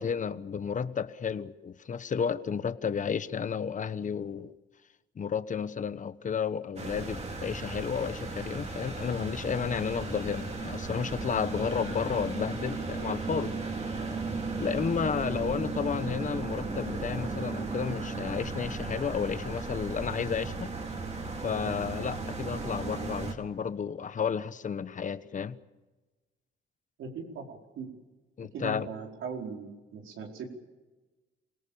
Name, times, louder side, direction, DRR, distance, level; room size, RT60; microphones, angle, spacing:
voice 1, 0.0-4.5 5.2-13.5 14.5-20.7 21.4-25.6 28.4-28.9, left 6 dB, 40° left, 13 dB, 1.1 m, -32 dB
sound 1, 6.8-23.3, right 3 dB, 35° right, 4.1 m, -35 dB
voice 2, 27.0-27.9 28.5-30.5, right 4 dB, 80° right, 1 dB, 4.6 m, -39 dB
26.5 x 18.0 x 7.1 m, 1.2 s
cardioid pair, 90°, 20 cm